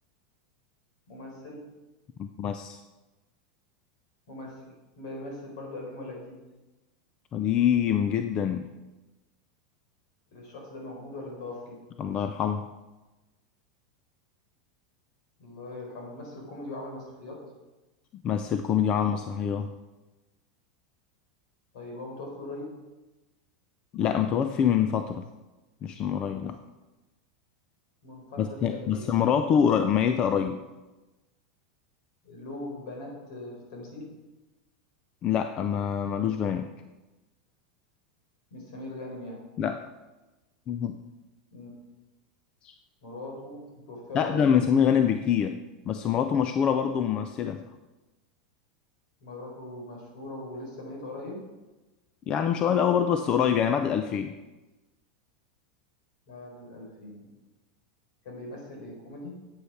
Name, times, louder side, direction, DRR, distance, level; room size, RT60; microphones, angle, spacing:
voice 1, 1.1-1.6 4.3-6.4 10.3-11.8 15.4-17.4 21.7-22.7 28.0-29.5 32.2-34.1 38.5-39.4 41.5-41.7 43.0-44.5 49.2-51.4 56.3-57.3 58.2-59.3, left 2 dB, 55° left, -1 dB, 4.1 m, -40 dB
voice 2, 2.2-2.8 7.3-8.7 12.0-12.6 18.2-19.7 23.9-25.2 25.8-26.6 28.4-30.6 35.2-36.7 39.6-39.8 40.7-41.0 42.6-42.7 44.1-45.6 45.9-47.6 52.3-54.3, left 8 dB, 20° left, 8 dB, 0.4 m, -25 dB
8.4 x 8.4 x 5.8 m, 1.1 s
supercardioid pair, 175°, 4 cm